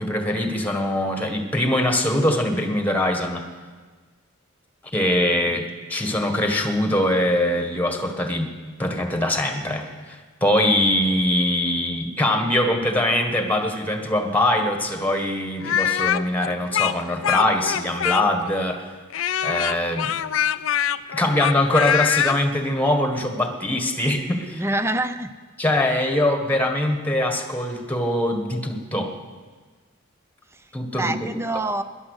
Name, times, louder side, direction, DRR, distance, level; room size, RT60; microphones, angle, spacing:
voice 1, 0.0-3.5 4.9-8.5 8.8-18.8 19.4-20.1 21.1-24.6 25.6-29.1 30.7-31.4, left 1 dB, 10° left, 5 dB, 1.5 m, -22 dB
Speech, 15.6-18.5 19.1-22.4, left 9 dB, 85° left, 0.5 m, -23 dB
voice 2, 24.5-25.3 30.5-30.7 30.9-31.8, right 2 dB, 15° right, 11 dB, 0.7 m, -26 dB
17.5 x 11.0 x 6.6 m, 1.4 s
head